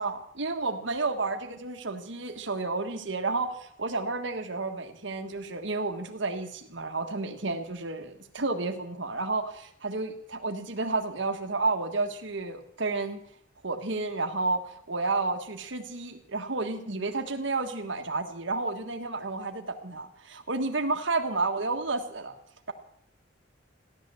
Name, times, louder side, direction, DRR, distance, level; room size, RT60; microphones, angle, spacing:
voice 1, 0.0-13.2 13.6-22.3, right 3 dB, 65° right, 6 dB, 1.5 m, -31 dB
15.5 x 11.5 x 7.7 m, 0.70 s
head